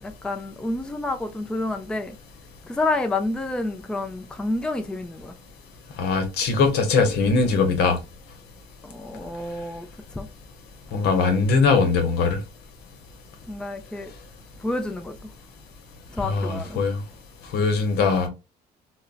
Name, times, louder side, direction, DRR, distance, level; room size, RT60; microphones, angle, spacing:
voice 1, 0.0-2.2 2.6-5.4 8.8-9.9 10.2-10.3 13.5-14.1 14.6-15.2 16.1-16.8, left 2 dB, 5° left, 0.4 m, -29 dB
voice 2, 6.0-8.0 10.9-12.4 16.2-17.0 17.5-18.3, left 4 dB, 75° left, 0.9 m, -21 dB
3.7 x 2.1 x 2.2 m
cardioid pair, 110°, 17 cm